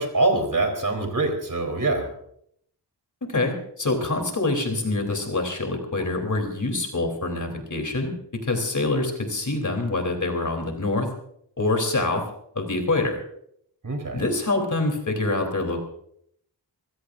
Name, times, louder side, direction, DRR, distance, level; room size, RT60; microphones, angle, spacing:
voice 1, 0.0-2.1 13.8-14.2, right 2 dB, 50° right, 3 dB, 3.9 m, -24 dB
voice 2, 3.3-8.1 8.4-11.1 11.6-12.2 12.6-13.2 14.1-15.8, left 2 dB, 45° left, 4 dB, 3.5 m, -25 dB
26.0 x 16.0 x 2.6 m, 0.69 s
wide cardioid pair, 75°, 41 cm